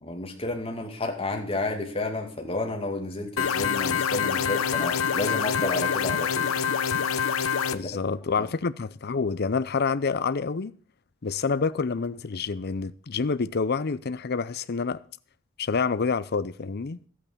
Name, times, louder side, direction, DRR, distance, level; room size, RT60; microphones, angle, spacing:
voice 1, 0.0-6.5 7.7-8.0, left 2 dB, 30° left, 2.4 m, -31 dB
sound 1, 3.4-7.8, left 7 dB, 85° left, 0.8 m, -26 dB
voice 2, 7.7-10.7 11.2-15.0 15.6-17.0, left 5 dB, 50° left, 0.6 m, -27 dB
13.0 x 8.7 x 6.8 m
head